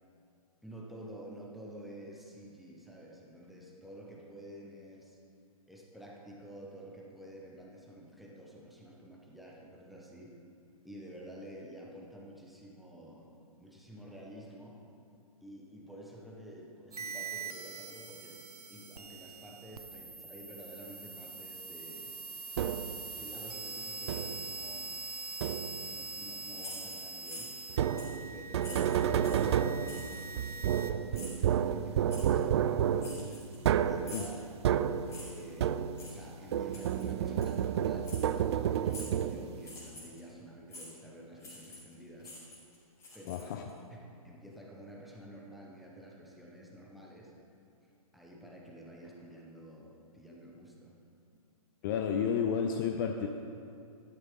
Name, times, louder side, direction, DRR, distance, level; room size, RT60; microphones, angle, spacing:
voice 1, 0.6-5.2 5.7-10.4 10.8-13.3 13.6-14.8 15.4-22.6 23.1-25.0 25.8-27.7 28.3-33.5 33.8-34.4 35.2-42.4 43.1-43.5 43.9-47.3 48.1-51.0, equal, ahead, -3 dB, 1.3 m, -50 dB
sound 1, 16.9-30.9, right 4 dB, 90° right, 0.6 m, -43 dB
sound 2, 22.6-23.1 24.1-24.5 25.4-26.0 27.7-36.2 36.5-39.7, right 9 dB, 45° right, 0.4 m, -31 dB
sound 3, 26.6-27.7 28.0-28.2 28.6-29.5 29.9-30.2 31.1-31.5 32.1-32.3 33.0-33.7 34.0-34.4 35.1-35.4 36.0-36.2 36.7-37.1 37.4-37.6 38.0-38.3 38.9-39.2 39.6-40.2 40.7-40.9 41.4-41.9 42.2-43.7, left 2 dB, 15° left, 2.9 m, -47 dB
voice 2, 43.3-43.6 51.8-53.3, left 7 dB, 35° left, 4 dB, 0.6 m, -31 dB
12.0 x 11.0 x 3.9 m, 2.4 s
figure-of-eight pair, 125°, 19 cm